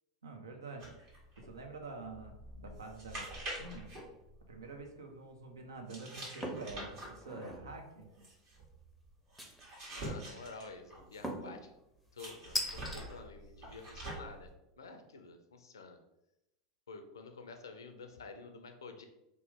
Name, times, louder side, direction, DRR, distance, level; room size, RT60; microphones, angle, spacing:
voice 1, 0.2-1.1 1.4-3.2 3.6-3.9 4.5-8.2, right 3 dB, 85° right, 3 dB, 0.5 m, -47 dB
sound 1, 0.8-4.9 5.9-11.4 12.2-14.5, right 1 dB, 50° right, 1.4 m, -46 dB
sound 2, 6.4-6.7 7.2-7.7 9.4-9.9 11.2-11.6 12.6-13.0, equal, ahead, 0.6 m, -38 dB
voice 2, 9.9-11.7 12.1-14.5 14.8-16.0 16.9-19.0, left 4 dB, 85° left, 6 dB, 0.4 m, -50 dB
3.0 x 2.0 x 3.4 m, 0.90 s
hypercardioid pair, 90°, 2 cm